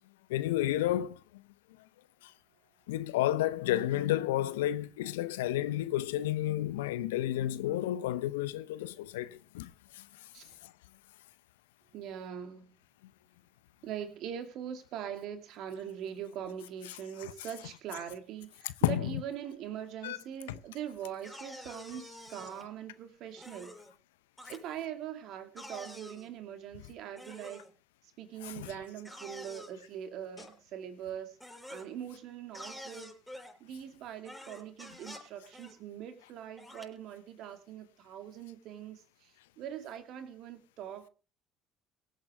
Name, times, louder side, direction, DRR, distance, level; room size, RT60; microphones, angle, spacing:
voice 1, 0.3-1.4 2.2-2.3 2.9-10.1 10.6-10.7 18.8-19.0 20.0-20.2 28.4-28.7, left 14 dB, 75° left, 0.7 m, -31 dB
voice 2, 11.9-12.7 13.8-23.8 24.5-27.6 28.2-31.4 31.7-33.1 33.6-41.1, right 9 dB, 60° right, 2.5 m, -42 dB
Groan Toy Long, 21.2-22.6 23.4-23.9 24.4-24.6 25.6-26.3 27.2-27.7 29.0-29.7 30.4-30.5 31.4-31.9 32.5-33.5 34.2-35.3 35.5-35.7 36.6-36.9, equal, 5° left, 6.6 m, -47 dB
23.5 x 8.8 x 3.4 m
figure-of-eight pair, 55°, 0 cm